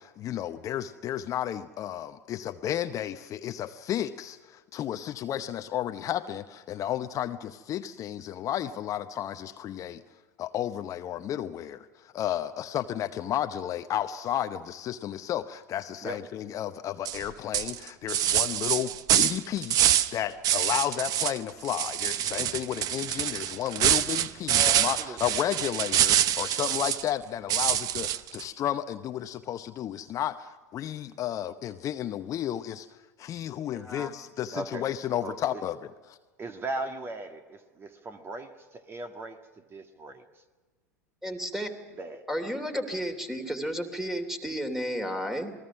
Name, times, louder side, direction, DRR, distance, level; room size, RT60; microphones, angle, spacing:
voice 1, 0.0-10.0 10.4-32.9 33.2-35.8 36.1-36.2, left 11 dB, 35° left, 9 dB, 0.9 m, -32 dB
sound 1, 17.0-17.2 17.5-20.1 20.4-21.4 21.6-27.1 27.5-28.4, right 11 dB, 40° right, 0.9 m, -25 dB
voice 2, 24.5-25.2 34.5-34.9 35.2-35.6 36.4-40.4 42.0-42.3, right 2 dB, 25° right, 7 dB, 1.7 m, -38 dB
voice 3, 33.7-34.1 41.2-41.7 42.3-45.5, equal, 5° right, 7 dB, 2.9 m, -32 dB
28.0 x 20.5 x 6.1 m, 1.3 s
figure-of-eight pair, 85°, 9 cm